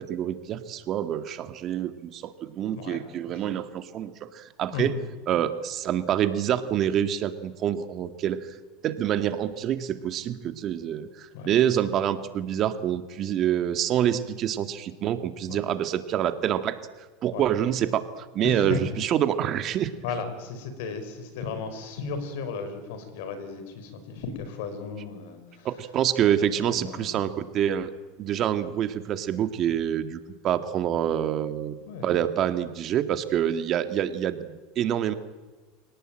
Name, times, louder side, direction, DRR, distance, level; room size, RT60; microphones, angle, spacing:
voice 1, 0.0-4.9 5.3-8.5 8.8-16.8 17.2-18.1 18.3-19.9 25.6-27.9 28.2-30.2 30.4-31.7 32.0-35.1, right 10 dB, 45° right, 10 dB, 1.9 m, -26 dB
voice 2, 2.7-3.4 4.7-5.0 11.3-11.5 15.5-15.6 17.3-17.5 18.4-19.0 20.0-25.7 26.2-27.2 31.9-32.3, left 5 dB, 75° left, 10 dB, 5.4 m, -35 dB
26.5 x 18.5 x 9.0 m, 1.3 s
supercardioid pair, 105°, 0 cm